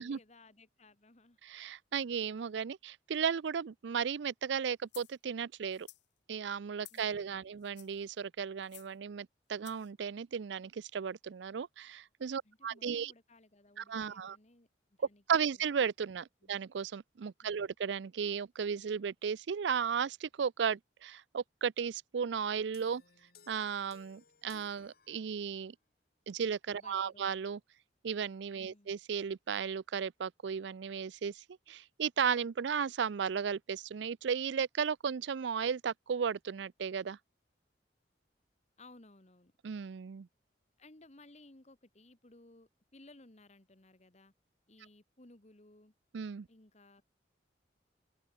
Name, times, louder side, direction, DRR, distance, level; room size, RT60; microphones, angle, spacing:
voice 1, 0.0-1.4 6.9-7.5 12.4-15.7 16.4-16.5 17.4-17.6 26.7-27.3 28.6-29.0 38.8-39.5 40.8-44.3 44.7-45.9 46.5-47.0, left 2 dB, 35° left, 1.7 m, -60 dB
voice 2, 1.4-5.9 6.3-13.1 13.8-14.4 15.3-23.0 23.5-25.7 26.3-27.6 28.0-37.2 39.6-40.3 46.1-46.5, right 7 dB, 75° right, 0.4 m, -35 dB
sound 1, 4.9-5.2 5.7-6.1 6.8-7.1 7.6-8.0 8.6-8.9 9.6-9.9, left 16 dB, 75° left, 2.4 m, -54 dB
sound 2, 22.7-25.7, left 6 dB, 55° left, 3.3 m, -62 dB
open air
head